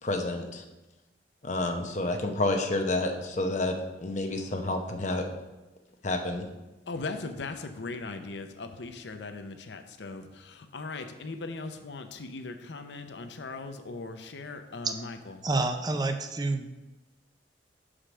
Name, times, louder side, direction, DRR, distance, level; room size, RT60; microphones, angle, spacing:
voice 1, 0.0-0.6 1.4-5.3 6.0-6.5, left 2 dB, 40° left, 4 dB, 0.9 m, -29 dB
voice 2, 6.9-15.4, left 3 dB, 75° left, 7 dB, 0.6 m, -39 dB
voice 3, 15.4-16.8, right 2 dB, 20° right, 6 dB, 0.5 m, -28 dB
5.7 x 5.0 x 6.1 m, 1.1 s
head